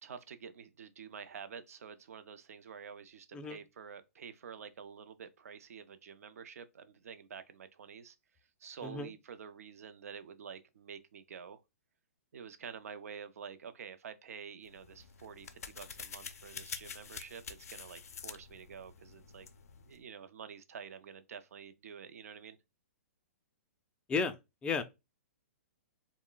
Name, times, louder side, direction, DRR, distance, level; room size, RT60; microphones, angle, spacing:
voice 1, 0.0-8.2 8.6-11.6 12.3-19.5 19.9-22.6, right 7 dB, 80° right, 0.4 m, -48 dB
voice 2, 3.3-3.6 8.8-9.1 24.1-24.4 24.6-24.8, left 5 dB, 15° left, 0.3 m, -33 dB
sound 1, 14.7-20.0, left 6 dB, 90° left, 0.4 m, -47 dB
2.3 x 2.1 x 3.7 m
hypercardioid pair, 135°, 8 cm